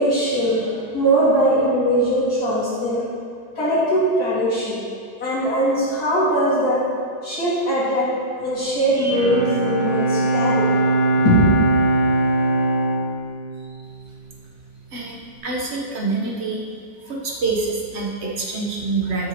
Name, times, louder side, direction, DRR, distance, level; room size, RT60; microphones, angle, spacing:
voice 1, 0.0-3.0 3.6-4.8 5.2-6.8 7.2-8.1 8.4-10.7 11.1-11.5, equal, 55° left, -11 dB, 2.6 m, -20 dB
Bowed string instrument, 8.8-14.6, right 2 dB, 35° left, 2.6 m, -21 dB
voice 2, 14.9-16.6 17.0-19.3, right 3 dB, 45° right, -2 dB, 1.1 m, -26 dB
12.0 x 6.2 x 3.0 m, 2.3 s
omnidirectional pair, 2.0 m